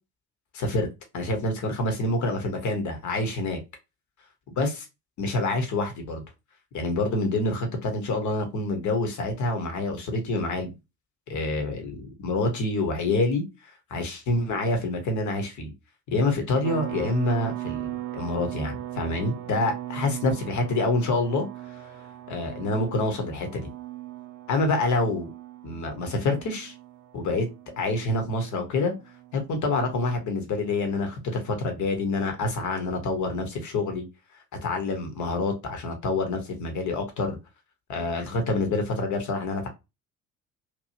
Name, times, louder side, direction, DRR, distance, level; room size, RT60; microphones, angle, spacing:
voice 1, 0.5-0.9 1.1-3.6 4.6-4.9 5.2-6.2 6.7-10.7 11.3-13.5 13.9-15.7 16.1-21.9 22.3-23.7 24.5-25.3 25.6-26.7 27.1-27.5 27.8-28.9 29.3-34.0 34.6-37.4 37.9-39.7, left 2 dB, 45° left, 1.2 m, -27 dB
sound 1, 16.6-29.6, right 14 dB, 50° right, 0.5 m, -39 dB
3.0 x 2.6 x 2.8 m
figure-of-eight pair, 55°, 42 cm